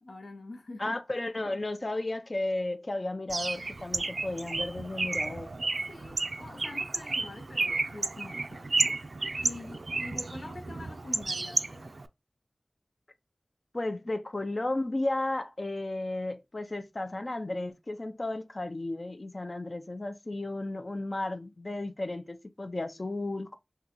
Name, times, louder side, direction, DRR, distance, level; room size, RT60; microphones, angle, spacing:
voice 1, 0.0-1.0 5.9-9.0 9.4-11.9, left 2 dB, 90° left, 0.7 m, -45 dB
voice 2, 0.8-5.5 13.7-23.6, left 2 dB, 50° left, 0.4 m, -34 dB
Bird, 3.3-12.1, right 3 dB, 75° right, 0.3 m, -32 dB
3.6 x 2.2 x 2.9 m
wide cardioid pair, 50°, 0 cm